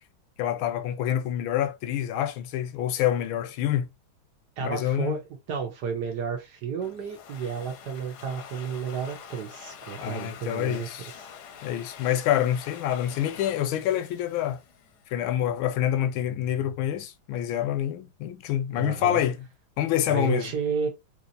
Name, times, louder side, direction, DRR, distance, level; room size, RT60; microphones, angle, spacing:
voice 1, 0.4-3.9 4.6-5.2 10.0-11.1 11.6-14.6 15.1-19.4 19.8-20.5, left 11 dB, 85° left, 1.4 m, -27 dB
voice 2, 4.6-5.2 5.5-10.9 18.8-19.2 20.1-20.9, right 6 dB, 60° right, 1.4 m, -31 dB
Domestic sounds home sounds, 6.8-15.3, left 7 dB, 65° left, 1.1 m, -46 dB
3.5 x 3.0 x 2.5 m
omnidirectional pair, 2.2 m